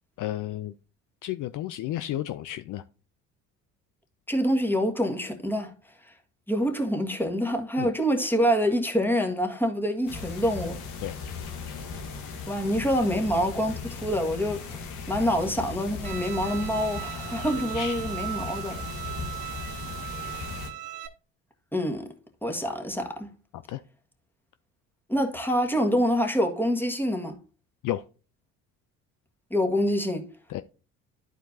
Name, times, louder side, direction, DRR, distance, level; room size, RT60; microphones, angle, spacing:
voice 1, 0.2-0.7 1.2-2.8 7.8-7.9 11.0-11.2 17.7-18.0 19.5-19.6 23.7-23.8 27.8-28.0 30.5-30.6, left 14 dB, 50° left, 0.5 m, -32 dB
voice 2, 4.3-5.7 6.5-10.8 12.5-14.8 15.1-18.8 21.7-22.1 22.4-23.3 25.1-27.4 29.5-30.3, equal, 5° left, 1.7 m, -26 dB
sound 1, 10.0-20.7, left 4 dB, 80° left, 1.6 m, -37 dB
Bowed string instrument, 16.0-21.1, right 14 dB, 75° right, 0.9 m, -38 dB
11.5 x 4.5 x 2.7 m
hypercardioid pair, 60°, 40 cm